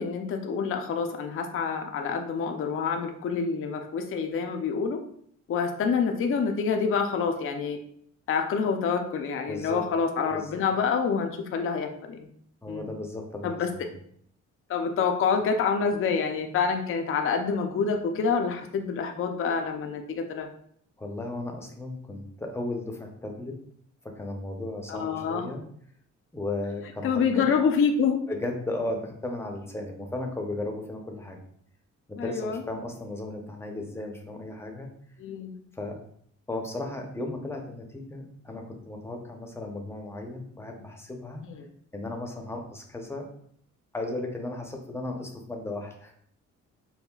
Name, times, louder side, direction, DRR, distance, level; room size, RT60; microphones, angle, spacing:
voice 1, 0.0-5.0 5.5-7.8 8.3-12.3 12.7-12.9 13.4-13.7 14.7-20.5 24.9-25.5 27.0-28.2 32.2-32.6 35.2-35.6 41.4-41.7, left 5 dB, 45° left, 5 dB, 0.5 m, -27 dB
voice 2, 9.5-9.8 10.3-10.6 12.6-13.9 21.0-23.5 24.2-25.6 26.3-27.5 28.3-31.4 32.1-34.9 35.7-35.9 36.5-41.4 41.9-43.3 43.9-46.1, left 2 dB, 10° left, 2 dB, 0.7 m, -35 dB
5.5 x 2.1 x 2.3 m, 0.63 s
cardioid pair, 90°, 30 cm